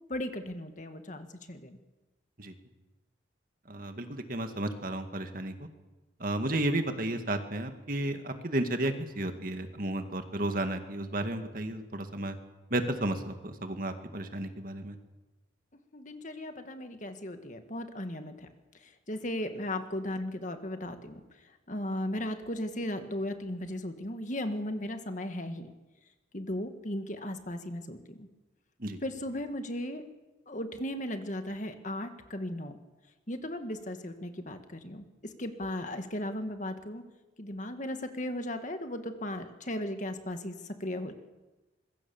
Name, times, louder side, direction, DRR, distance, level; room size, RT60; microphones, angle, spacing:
voice 1, 0.1-1.8 15.9-18.5 18.8-21.2 21.7-25.7 26.3-28.3 29.0-30.0 30.5-32.7 33.3-37.0 37.4-40.5 40.8-41.1, left 1 dB, 40° left, 7 dB, 1.9 m, -36 dB
voice 2, 3.7-5.7 6.2-12.4 12.7-15.0 28.8-29.0, right 1 dB, 45° right, 7 dB, 2.1 m, -33 dB
25.5 x 22.5 x 7.2 m, 1.1 s
head